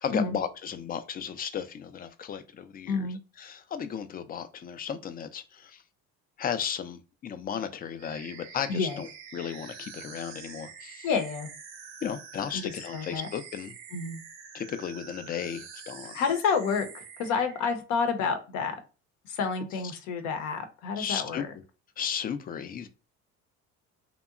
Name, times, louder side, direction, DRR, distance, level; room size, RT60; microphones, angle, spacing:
voice 1, 0.0-5.8 6.4-11.1 12.0-13.7 14.5-16.2 21.0-21.4 22.0-22.9, left 8 dB, 30° left, 0.4 m, -35 dB
voice 2, 2.9-3.2 8.7-9.0 11.0-11.5 12.5-13.3 13.9-14.2 16.1-18.7 19.2-21.5, left 5 dB, 70° left, 0.7 m, -29 dB
sound 1, 8.0-17.6, right 6 dB, 85° right, 0.7 m, -46 dB
2.8 x 2.1 x 2.4 m
supercardioid pair, 85°, 31 cm